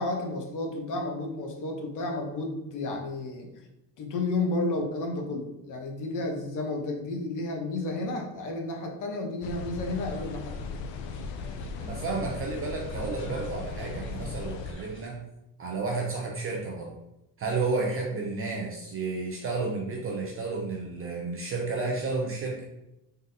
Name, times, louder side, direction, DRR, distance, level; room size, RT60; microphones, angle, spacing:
voice 1, 0.0-3.5 4.0-10.6, left 2 dB, 45° left, 2 dB, 0.8 m, -32 dB
sound 1, 9.4-14.7, left 4 dB, 80° left, 0.5 m, -37 dB
sound 2, 9.9-15.1, equal, 25° left, 1.2 m, -47 dB
voice 2, 11.8-15.2 15.6-17.0 17.4-22.6, right 3 dB, 30° right, 0 dB, 0.4 m, -31 dB
3.9 x 3.6 x 2.6 m, 0.89 s
cardioid pair, 170°, 46 cm